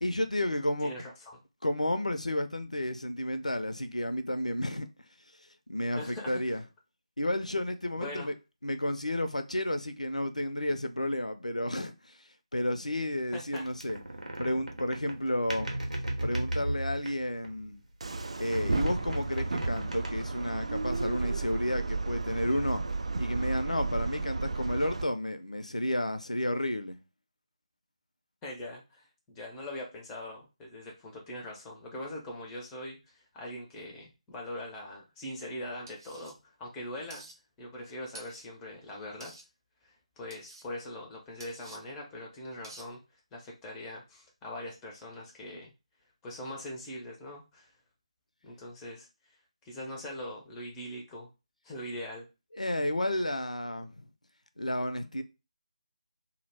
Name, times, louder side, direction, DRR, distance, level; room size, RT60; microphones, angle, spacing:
voice 1, 0.0-0.9 1.6-4.9 5.7-6.6 7.2-8.3 8.6-11.9 12.5-14.0 14.4-15.7 16.2-17.8 18.4-22.8 23.2-27.0 52.6-54.0 54.6-55.2, left 1 dB, 85° left, 0.4 m, -31 dB
voice 2, 0.8-1.4 5.9-6.6 7.9-8.3 13.3-13.6 28.4-37.3 37.6-39.4 39.8-43.0 43.3-45.7 46.2-47.7 48.4-49.1 49.6-51.3 51.6-52.3, left 1 dB, 10° left, 0.5 m, -42 dB
sound 1, 13.6-17.7 18.1-20.5, right 1 dB, 90° right, 0.9 m, -36 dB
sound 2, 18.0-25.0, right 3 dB, 60° right, 0.3 m, -33 dB
sound 3, 35.9-36.3 37.1-37.4 38.1-38.5 39.2-39.5 40.3-40.7 41.4-41.8 42.6-42.9, right 2 dB, 35° right, 0.7 m, -49 dB
2.2 x 2.0 x 3.2 m
figure-of-eight pair, 155°, 4 cm